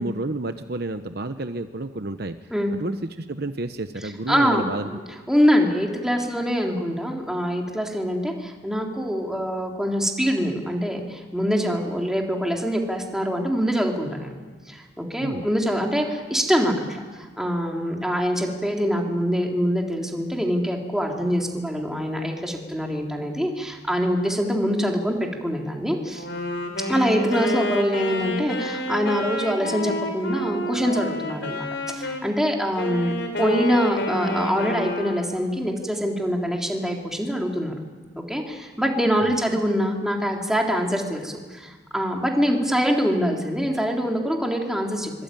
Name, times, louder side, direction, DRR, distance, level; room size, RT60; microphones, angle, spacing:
voice 1, 0.0-2.4 2.8-4.9 15.2-15.5, right 2 dB, 55° right, 9 dB, 1.0 m, -30 dB
voice 2, 4.0-5.0 5.3-14.4 14.7-26.2 26.9-37.8 38.1-45.1, equal, 5° right, 0 dB, 3.4 m, -24 dB
Wind instrument woodwind instrument, 26.1-32.3 32.8-35.4, left 1 dB, 60° left, 4.8 m, -29 dB
24.5 x 24.5 x 9.2 m, 1.4 s
head